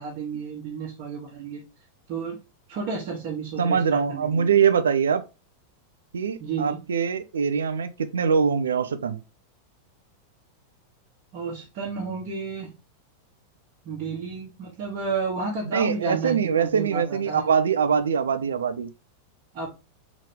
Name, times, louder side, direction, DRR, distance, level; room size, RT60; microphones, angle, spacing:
voice 1, 0.0-1.6 2.1-2.4 2.7-4.5 6.4-6.8 11.3-12.7 13.8-17.5 19.5-19.7, right 5 dB, 40° right, 1.4 m, -32 dB
voice 2, 3.6-5.2 6.1-9.2 15.7-18.9, right 6 dB, 65° right, 0.4 m, -23 dB
4.0 x 3.6 x 3.3 m
figure-of-eight pair, 90°, 0 cm